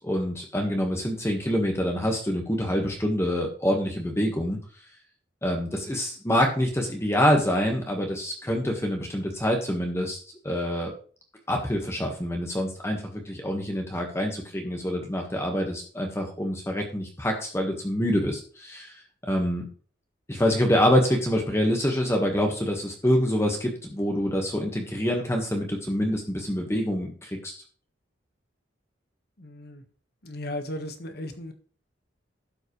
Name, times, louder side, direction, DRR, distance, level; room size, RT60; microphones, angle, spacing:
voice 1, 0.0-4.6 5.4-10.2 10.4-10.9 11.5-18.9 19.2-19.7 20.3-27.5, equal, 15° left, 2 dB, 1.6 m, -26 dB
voice 2, 29.4-29.8 30.2-31.5, left 1 dB, 60° left, 7 dB, 1.5 m, -36 dB
12.0 x 7.9 x 3.2 m, 0.41 s
head